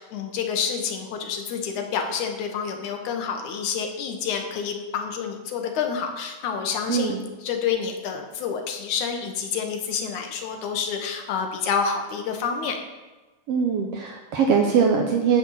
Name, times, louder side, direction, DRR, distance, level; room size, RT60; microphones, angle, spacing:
voice 1, 0.0-12.8, left 6 dB, 75° left, 4 dB, 2.4 m, -28 dB
voice 2, 6.9-7.2 13.5-15.4, right 6 dB, 75° right, 1 dB, 1.4 m, -21 dB
10.0 x 4.3 x 7.2 m, 1.2 s
omnidirectional pair, 3.6 m